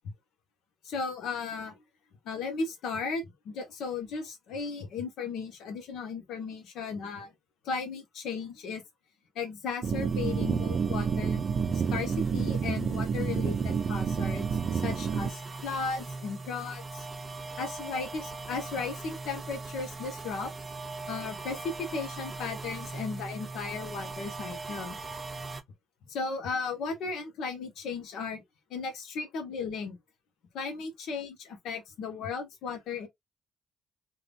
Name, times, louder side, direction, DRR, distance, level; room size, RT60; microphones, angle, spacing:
voice 1, 0.8-1.7 2.2-7.3 7.6-8.8 9.3-11.4 11.7-14.5 14.7-17.1 17.6-20.5 21.1-25.0 26.1-28.4 28.7-30.0 30.5-33.1, left 4 dB, 80° left, 1.3 m, -35 dB
sound 1, 9.8-25.6, right 3 dB, 30° right, 0.9 m, -41 dB
sound 2, 9.8-15.3, right 6 dB, 50° right, 0.4 m, -29 dB
3.6 x 2.9 x 2.5 m
cardioid pair, 90°, 0 cm